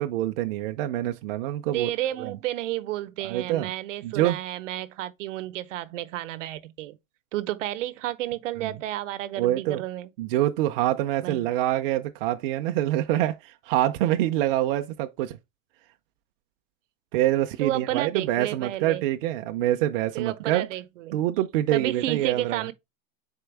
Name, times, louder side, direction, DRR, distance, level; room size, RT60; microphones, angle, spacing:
voice 1, 0.0-1.9 2.2-2.4 3.2-3.7 4.0-4.4 8.6-8.7 9.4-9.8 10.2-15.4 17.1-20.7 21.1-22.7, right 14 dB, 45° right, 0.6 m, -25 dB
voice 2, 1.7-7.0 7.3-10.1 11.2-11.5 17.6-19.0 20.1-21.1 21.7-22.7, right 14 dB, 75° right, 0.9 m, -31 dB
6.8 x 4.6 x 3.3 m
supercardioid pair, 165°, 38 cm